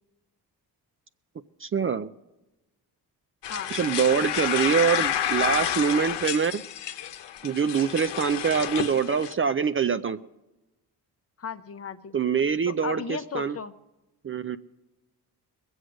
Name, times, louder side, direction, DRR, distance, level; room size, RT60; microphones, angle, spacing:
voice 1, 1.6-2.1 3.7-6.6 7.4-10.2 12.1-13.6 14.2-14.6, right 6 dB, 30° right, 12 dB, 0.4 m, -24 dB
sound 1, 3.4-9.3, left 10 dB, 85° left, 0.9 m, -30 dB
voice 2, 11.4-12.2 12.7-13.7, left 6 dB, 35° left, 11 dB, 0.7 m, -35 dB
20.5 x 8.0 x 6.3 m, 1.0 s
cardioid pair, 85°, 41 cm